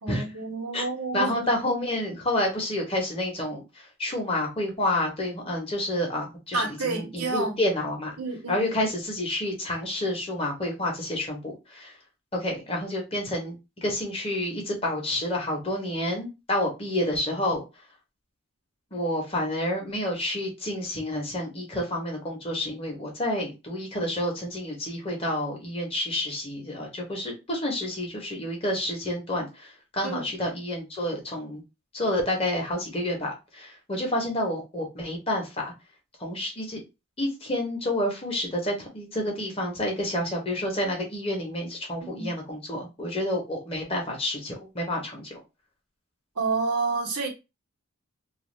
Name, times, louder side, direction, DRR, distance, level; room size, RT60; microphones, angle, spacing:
voice 1, 0.0-1.5 6.5-7.6 8.2-8.6 30.0-30.3 42.0-42.3 46.3-47.3, right 3 dB, 90° right, 0.9 m, -29 dB
voice 2, 1.1-8.1 8.5-12.0 12.3-17.6 18.9-31.6 31.9-35.7 36.2-36.8 37.2-45.4, left 1 dB, 25° left, 0.8 m, -29 dB
2.4 x 2.2 x 3.1 m
head